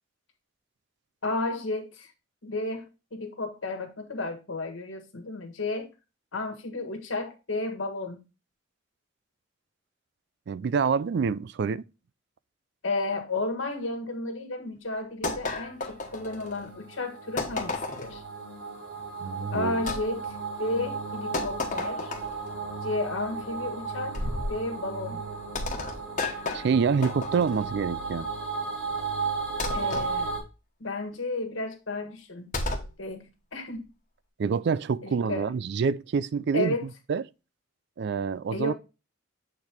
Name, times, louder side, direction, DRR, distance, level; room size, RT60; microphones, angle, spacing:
voice 1, 1.2-2.1 2.4-2.9 3.1-5.9 6.3-8.2 12.8-18.2 19.5-22.1 22.8-24.2 24.5-25.2 29.7-30.3 30.8-32.6 33.0-33.3 33.5-33.8 35.0-35.5 36.5-36.9 38.5-38.7, left 2 dB, 75° left, 1.5 m, -32 dB
voice 2, 10.5-11.8 19.2-19.8 26.5-28.3 34.4-36.7 37.1-37.2 38.0-38.7, right 5 dB, 55° right, 0.3 m, -26 dB
sound 1, 15.2-16.7 17.4-18.2 19.9-20.0 21.3-22.5 24.1-24.6 25.5-27.7 29.6-30.1 32.5-32.9, left 2 dB, 40° left, 1.3 m, -32 dB
sound 2, 15.5-30.4, right 4 dB, 90° right, 3.9 m, -35 dB
7.8 x 4.5 x 3.4 m
head